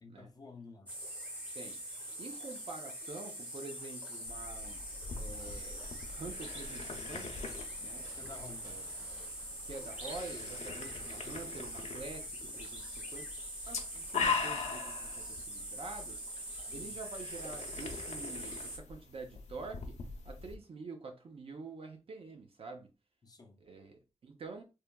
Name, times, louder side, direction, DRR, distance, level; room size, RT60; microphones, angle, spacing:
voice 1, 0.0-0.9 8.2-8.8 16.7-17.0 23.2-23.6, left 3 dB, 35° left, 0.4 m, -51 dB
sound 1, 0.9-18.8, equal, 15° right, 0.7 m, -43 dB
voice 2, 2.2-4.8 5.2-7.5 7.8-8.1 8.6-8.9 9.7-16.2 16.7-20.0 20.2-22.9 23.6-24.6, right 3 dB, 55° right, 0.6 m, -47 dB
sound 2, 4.3-20.6, left 5 dB, 85° left, 0.5 m, -42 dB
sound 3, 5.3-10.4, right 1 dB, 30° right, 1.0 m, -59 dB
3.0 x 2.2 x 2.2 m
wide cardioid pair, 165°, 11 cm